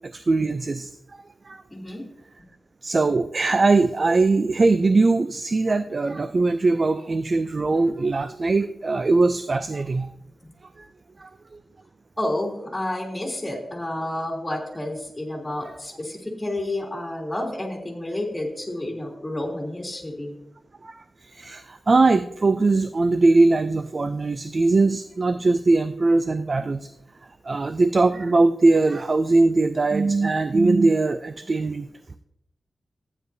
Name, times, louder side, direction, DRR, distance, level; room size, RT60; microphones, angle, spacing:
voice 1, 0.1-0.9 1.5-1.6 2.8-10.1 11.2-11.3 20.8-21.0 21.3-26.9 27.5-31.9, right 3 dB, 40° right, 10 dB, 0.4 m, -21 dB
voice 2, 1.7-2.0 12.2-20.3, left 1 dB, 15° left, -2 dB, 2.9 m, -30 dB
14.5 x 9.7 x 2.7 m, 0.81 s
wide cardioid pair, 100°, 0 cm